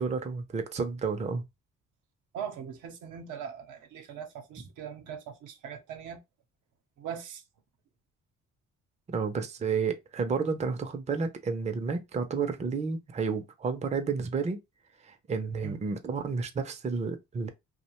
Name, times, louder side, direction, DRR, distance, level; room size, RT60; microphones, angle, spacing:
voice 1, 0.0-1.5 9.1-14.6 15.0-17.5, right 5 dB, 25° right, 0.4 m, -31 dB
voice 2, 2.3-6.2 7.0-7.4 15.6-15.8, right 8 dB, 85° right, 0.7 m, -40 dB
2.5 x 2.1 x 2.9 m
cardioid pair, 90°, 30 cm